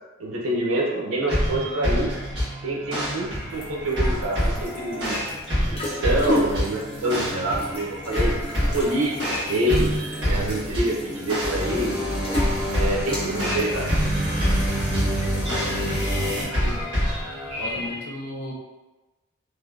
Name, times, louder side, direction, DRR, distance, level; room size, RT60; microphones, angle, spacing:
voice 1, 0.2-2.1 2.6-5.2 5.8-8.4 8.7-9.9 10.3-12.0 12.7-13.9, right 1 dB, 85° right, -2 dB, 0.6 m, -26 dB
sound 1, 1.3-18.0, equal, 55° right, 1.3 m, -27 dB
sound 2, 2.9-17.9, left 1 dB, 25° left, 0.5 m, -35 dB
sound 3, 11.4-16.4, equal, 5° right, 0.9 m, -27 dB
voice 2, 15.3-16.8 17.5-18.5, left 1 dB, 90° left, -2 dB, 0.6 m, -36 dB
3.2 x 2.1 x 2.4 m, 1.1 s
head